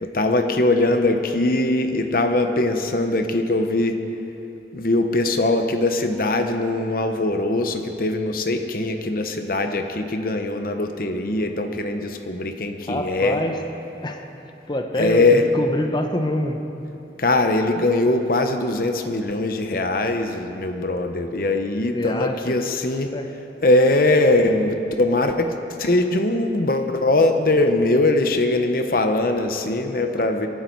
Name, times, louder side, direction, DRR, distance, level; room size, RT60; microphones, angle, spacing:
voice 1, 0.0-4.0 4.7-13.4 15.0-15.4 17.2-23.1 23.6-25.5 25.8-30.5, left 2 dB, 55° left, 6 dB, 0.9 m, -21 dB
voice 2, 12.9-13.6 14.0-14.2 14.7-16.6 21.9-22.6 23.1-23.3, left 1 dB, 25° left, 5 dB, 0.9 m, -25 dB
23.0 x 9.6 x 4.6 m, 3.0 s
head